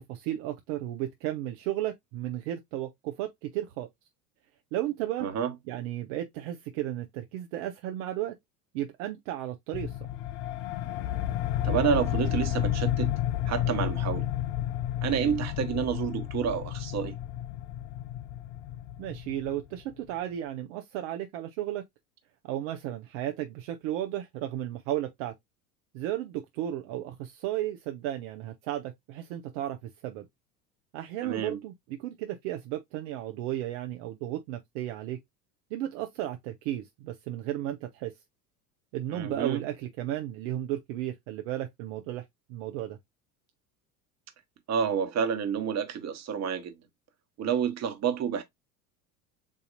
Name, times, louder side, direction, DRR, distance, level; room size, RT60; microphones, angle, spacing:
voice 1, 0.0-3.9 4.7-5.3 5.7-8.3 8.7-9.9 19.0-21.8 22.4-25.3 25.9-29.8 30.0-30.3 30.9-35.2 35.7-38.1 38.9-42.2 42.5-43.0, right 13 dB, 55° right, 0.8 m, -34 dB
voice 2, 5.2-5.5 11.6-13.1 13.5-14.2 15.0-17.1 31.2-31.6 39.1-39.6 44.7-46.7 47.4-48.4, right 8 dB, 35° right, 1.3 m, -29 dB
sound 1, 9.7-19.9, left 12 dB, 45° left, 0.6 m, -31 dB
7.3 x 2.8 x 2.5 m
hypercardioid pair, 75°, 46 cm